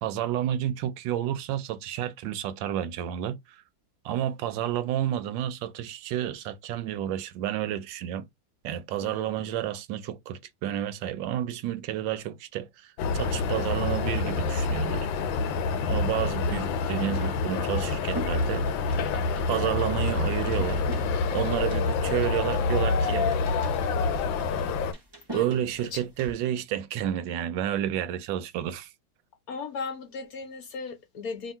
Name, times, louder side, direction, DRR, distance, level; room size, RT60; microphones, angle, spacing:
voice 1, 0.0-3.6 4.0-8.2 8.6-15.1 15.9-18.7 19.5-21.0 21.3-23.3 25.3-28.9, right 11 dB, 80° right, 1.3 m, -30 dB
sound 1, 13.0-24.9, left 4 dB, 85° left, 1.3 m, -27 dB
sound 2, 16.6-26.3, right 1 dB, 35° right, 0.4 m, -44 dB
voice 2, 25.3-25.6 25.9-26.0 29.5-31.5, left 4 dB, 65° left, 0.9 m, -37 dB
2.8 x 2.8 x 4.3 m
omnidirectional pair, 2.1 m